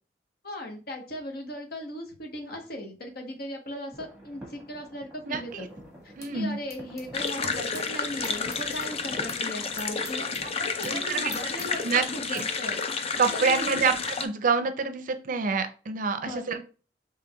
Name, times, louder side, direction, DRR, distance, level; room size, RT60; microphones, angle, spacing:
voice 1, 0.4-5.7 6.0-13.9 16.2-16.6, left 1 dB, 60° left, 3 dB, 1.0 m, -38 dB
sound 1, 3.9-9.5, right 1 dB, 5° right, 1.2 m, -47 dB
voice 2, 5.2-5.7 6.2-6.6 10.8-11.3 11.8-12.4 13.2-16.6, right 5 dB, 50° right, 9 dB, 0.5 m, -27 dB
sound 2, 5.5-7.9 8.2-12.4, left 1 dB, 20° left, 1.0 m, -45 dB
sound 3, 7.1-14.3, left 5 dB, 35° left, 0.4 m, -31 dB
5.3 x 3.2 x 2.2 m, 0.36 s
head